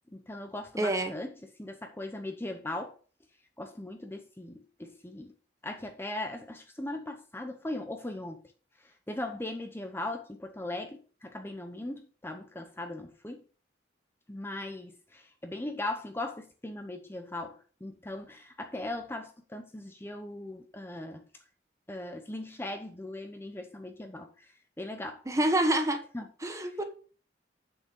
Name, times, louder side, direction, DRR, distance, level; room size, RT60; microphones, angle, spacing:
voice 1, 0.1-1.3 1.6-2.9 3.6-5.3 5.6-8.4 9.1-13.4 14.3-21.2 21.9-24.5 24.8-25.2 26.1-26.3 26.6-26.7, left 1 dB, 15° left, 0.8 m, -39 dB
voice 2, 0.8-1.1 25.3-26.0 26.4-26.8, right 1 dB, 20° right, 1.2 m, -27 dB
8.5 x 6.5 x 4.5 m
head